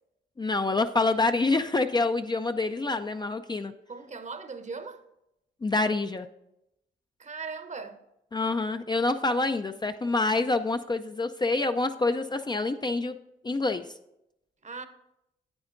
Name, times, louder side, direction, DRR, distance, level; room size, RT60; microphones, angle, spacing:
voice 1, 0.4-3.7 5.6-6.3 8.3-13.2 13.4-13.9, left 3 dB, 20° left, 0.4 m, -27 dB
voice 2, 3.9-5.0 7.2-8.0 14.6-14.8, right 4 dB, 35° right, 0.9 m, -38 dB
9.5 x 8.6 x 2.6 m
supercardioid pair, 60°, 20 cm